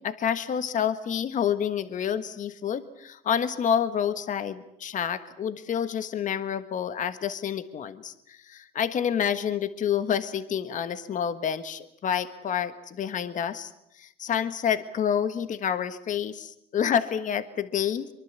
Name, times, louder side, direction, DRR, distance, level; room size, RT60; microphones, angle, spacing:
voice 1, 0.0-13.7 14.0-18.1, left 8 dB, 50° left, 11 dB, 1.5 m, -28 dB
24.0 x 23.5 x 8.3 m, 0.75 s
cardioid pair, 110°, 17 cm